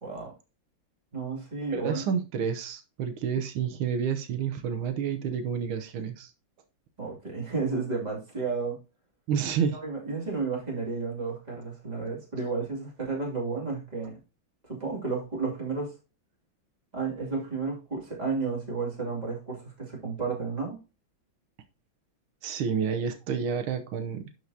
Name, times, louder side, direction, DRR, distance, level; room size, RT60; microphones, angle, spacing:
voice 1, 0.0-0.3 1.1-2.0 7.0-8.8 9.6-14.2 14.6-15.9 16.9-20.8, right 4 dB, 20° right, -2 dB, 2.6 m, -32 dB
voice 2, 1.7-6.3 9.3-9.8 22.4-24.3, right 7 dB, 85° right, 7 dB, 1.7 m, -29 dB
11.5 x 4.7 x 2.7 m, 0.31 s
omnidirectional pair, 2.2 m